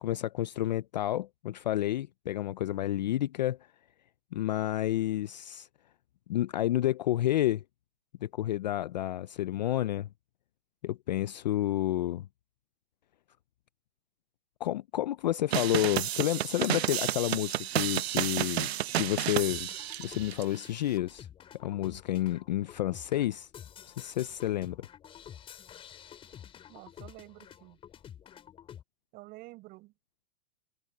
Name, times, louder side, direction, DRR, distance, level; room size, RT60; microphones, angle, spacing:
voice 1, 0.0-3.6 4.3-5.7 6.3-7.6 8.2-10.1 10.8-12.3 14.6-19.7 20.0-21.3 21.6-23.5 23.9-24.8, left 13 dB, 40° left, 0.4 m, -30 dB
sound 1, 15.5-20.4, right 12 dB, 70° right, 0.9 m, -31 dB
sound 2, 19.4-28.8, left 9 dB, 15° left, 6.0 m, -50 dB
voice 2, 26.7-27.8 29.1-29.9, right 20 dB, 25° right, 7.1 m, -49 dB
hypercardioid pair, 165°, 33 cm